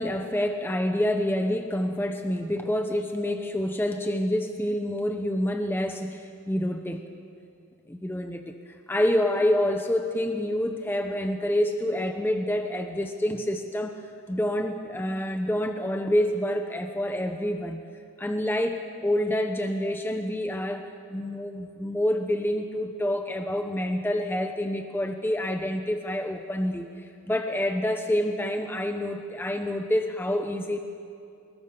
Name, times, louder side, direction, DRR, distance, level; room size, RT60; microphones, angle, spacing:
voice 1, 0.0-7.0 7.9-14.0 14.3-17.8 18.2-20.8 21.1-30.8, left 1 dB, 5° left, 5 dB, 1.0 m, -27 dB
25.0 x 21.5 x 7.0 m, 2.6 s
wide cardioid pair, 130°, 31 cm